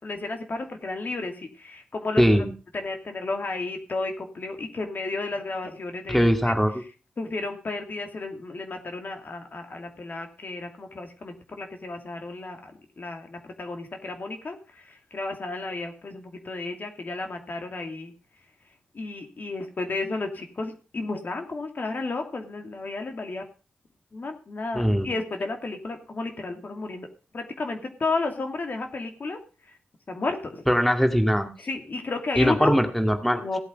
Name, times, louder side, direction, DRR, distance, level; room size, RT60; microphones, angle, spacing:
voice 1, 0.0-2.2 2.7-6.6 7.2-18.1 18.9-23.4 24.1-27.1 27.3-29.4 30.1-30.6 31.6-32.8 33.4-33.6, left 3 dB, 60° left, 4 dB, 2.7 m, -32 dB
voice 2, 2.2-2.5 6.1-6.7 24.7-25.1 30.7-31.5 32.4-33.4, equal, 5° left, 5 dB, 2.1 m, -21 dB
17.0 x 8.2 x 5.3 m, 0.36 s
cardioid pair, 60°, 4 cm